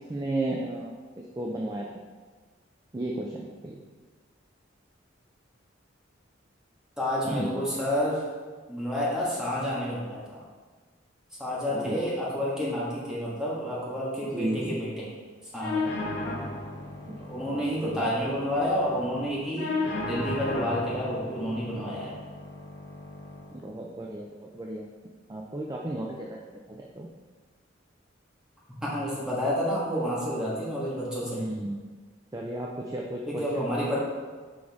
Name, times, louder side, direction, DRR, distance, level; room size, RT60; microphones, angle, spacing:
voice 1, 0.1-2.0 2.9-3.8 7.2-7.5 11.7-12.0 14.3-14.8 17.1-18.0 23.5-24.9 25.3-26.4 26.7-27.1 31.2-31.9 32.3-33.6, right 1 dB, 20° right, -1 dB, 0.4 m, -34 dB
voice 2, 7.0-8.2 8.7-10.4 11.4-15.1 15.5-15.9 17.2-19.7 20.0-22.2 28.8-31.4 33.3-34.0, equal, 5° right, -7 dB, 1.5 m, -29 dB
sound 1, 15.6-23.6, left 2 dB, 60° left, 0.9 m, -35 dB
6.2 x 4.9 x 3.6 m, 1.5 s
head